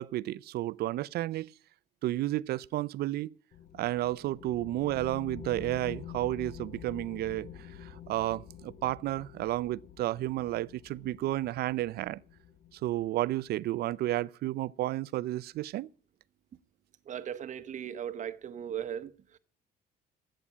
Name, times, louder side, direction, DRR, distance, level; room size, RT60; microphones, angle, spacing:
voice 1, 0.0-1.5 2.0-3.3 3.7-12.2 12.7-15.9, right 15 dB, 70° right, 0.6 m, -32 dB
sound 1, 3.5-13.5, left 9 dB, 50° left, 1.2 m, -48 dB
voice 2, 17.1-19.4, right 9 dB, 45° right, 1.0 m, -38 dB
13.5 x 8.8 x 8.3 m
cardioid pair, 110°, 17 cm